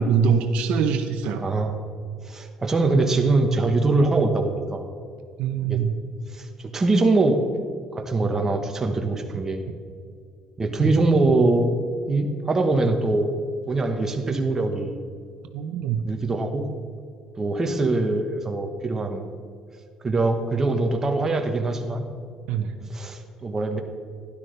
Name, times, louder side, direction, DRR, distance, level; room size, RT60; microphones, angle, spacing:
voice 1, 0.0-1.4 5.4-6.0 10.8-10.9 15.5-16.1 22.5-22.7, right 6 dB, 75° right, 6 dB, 0.8 m, -23 dB
voice 2, 1.4-1.8 2.2-4.8 5.7-5.8 6.3-6.5 6.7-7.4 7.9-9.6 10.6-11.8 12.1-13.3 13.7-15.0 16.0-16.7 17.3-19.3 20.0-22.1 22.9-23.8, right 2 dB, 25° right, 4 dB, 1.2 m, -23 dB
12.0 x 11.5 x 3.4 m, 2.2 s
cardioid pair, 115°, 2 cm